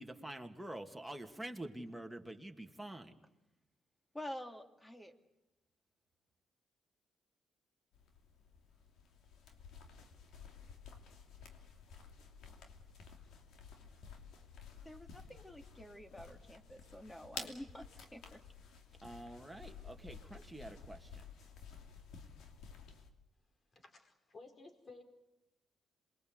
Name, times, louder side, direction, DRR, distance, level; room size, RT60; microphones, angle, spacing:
voice 1, 0.0-3.1 19.0-21.2, right 1 dB, 5° right, 2.5 m, -47 dB
voice 2, 4.1-5.1 14.8-18.4, left 1 dB, 10° left, 2.6 m, -49 dB
sound 1, 7.9-23.1, left 6 dB, 80° left, 2.9 m, -53 dB
voice 3, 23.7-25.0, left 3 dB, 35° left, 4.6 m, -55 dB
27.5 x 22.0 x 8.2 m
cardioid pair, 90°, 0 cm